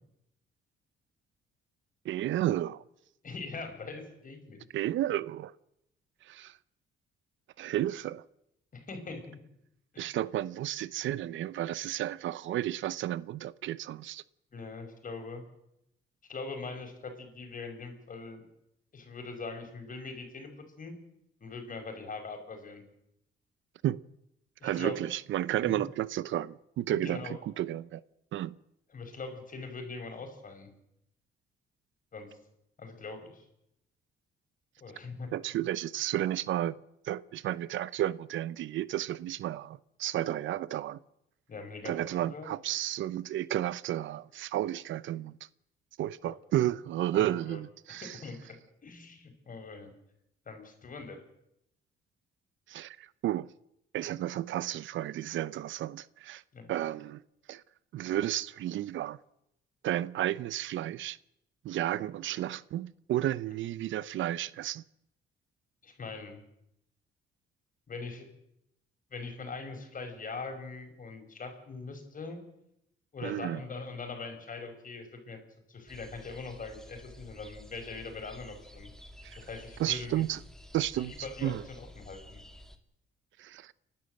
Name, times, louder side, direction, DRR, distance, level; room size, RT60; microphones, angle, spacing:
voice 1, 2.0-2.8 4.7-5.5 6.2-6.6 7.6-8.2 10.0-14.2 23.8-24.0 24.6-28.0 28.3-28.6 35.3-36.8 37.0-41.0 41.8-45.4 46.0-48.2 52.7-53.5 53.9-56.4 56.7-57.2 57.5-57.6 57.9-59.2 59.8-61.2 61.6-64.8 73.2-73.6 79.2-79.4 79.8-80.4 80.7-81.1 81.4-81.6 83.4-83.7, right 13 dB, 75° right, 0.7 m, -32 dB
voice 2, 3.2-4.7 8.7-9.4 9.9-10.1 14.5-15.4 16.3-18.4 18.9-20.5 20.8-21.0 21.4-22.8 24.6-25.0 25.6-25.9 26.9-27.4 28.9-30.7 32.1-32.4 32.8-33.5 34.8-35.3 41.5-42.0 42.3-42.5 46.2-46.3 47.1-47.6 48.0-49.9 50.5-51.2 56.5-56.7 65.8-66.4 67.9-68.3 69.1-72.4 73.1-75.4 75.7-78.9 79.4-80.2 80.9-82.4, left 4 dB, 45° left, 5.5 m, -42 dB
sound 1, 75.9-82.8, left 1 dB, 5° left, 2.1 m, -51 dB
29.5 x 12.0 x 7.8 m
cardioid pair, 90°, 20 cm